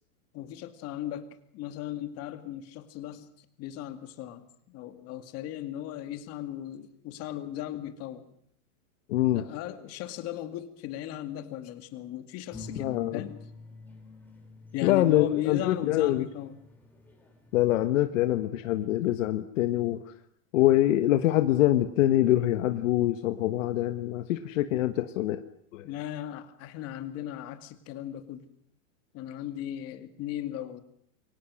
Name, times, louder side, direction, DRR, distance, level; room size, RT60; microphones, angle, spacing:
voice 1, 0.3-3.3 3.6-8.2 9.3-13.4 14.7-16.6 25.8-28.5 29.1-30.8, left 12 dB, 35° left, 10 dB, 2.3 m, -37 dB
voice 2, 9.1-9.4 12.8-13.3 14.8-16.2 17.5-20.0 20.5-25.4 25.7-25.9, left 14 dB, 60° left, 9 dB, 1.5 m, -24 dB
sound 1, 12.5-17.7, left 4 dB, 5° left, 4.7 m, -47 dB
28.0 x 24.0 x 6.4 m, 0.66 s
supercardioid pair, 150°, 44 cm